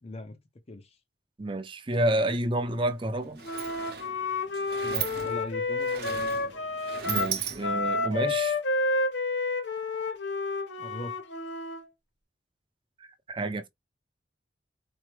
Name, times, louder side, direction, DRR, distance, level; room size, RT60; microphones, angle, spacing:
voice 1, 0.0-0.4 0.7-1.0 4.8-6.4 10.8-11.2, left 2 dB, 35° left, 0.6 m, -40 dB
voice 2, 1.4-3.4 7.1-8.6 13.3-13.7, right 1 dB, 30° right, 0.5 m, -29 dB
Sliding door, 2.7-2.8 3.1-8.0, right 8 dB, 60° right, 0.8 m, -37 dB
Wind instrument woodwind instrument, 3.4-11.9, left 3 dB, 75° left, 0.9 m, -30 dB
4.5 x 2.0 x 3.2 m
head